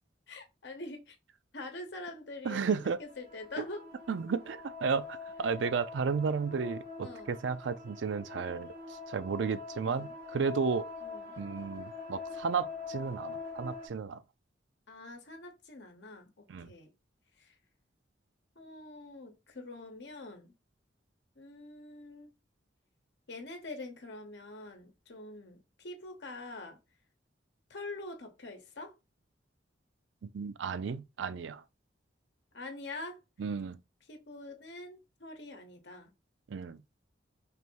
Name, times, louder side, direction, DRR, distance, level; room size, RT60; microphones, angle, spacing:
voice 1, 0.3-1.2 1.5-3.9 7.0-7.4 9.8-10.1 11.0-11.4 14.9-16.9 17.4-17.5 18.6-20.5 21.4-22.3 23.3-26.8 27.7-29.0 32.5-33.2 34.1-36.1, left 2 dB, 65° left, 0.9 m, -45 dB
voice 2, 2.4-3.0 3.6-3.7 4.1-10.9 11.4-14.2 16.5-16.7 30.2-31.6 33.4-33.8 36.5-36.8, right 5 dB, 75° right, 0.4 m, -33 dB
sound 1, 3.0-13.9, left 4 dB, 50° right, 1.3 m, -44 dB
3.4 x 2.6 x 4.5 m
head